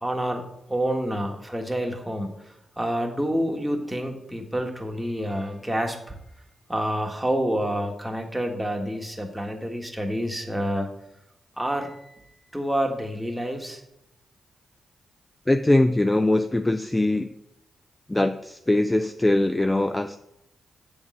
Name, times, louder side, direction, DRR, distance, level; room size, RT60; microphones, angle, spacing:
voice 1, 0.0-6.2 6.7-10.9 11.6-12.1 12.5-13.8, equal, 5° right, 2 dB, 1.5 m, -28 dB
voice 2, 15.5-17.3 18.1-20.2, left 1 dB, 20° left, 8 dB, 0.4 m, -22 dB
7.9 x 3.6 x 6.2 m, 0.82 s
supercardioid pair, 50°, 0 cm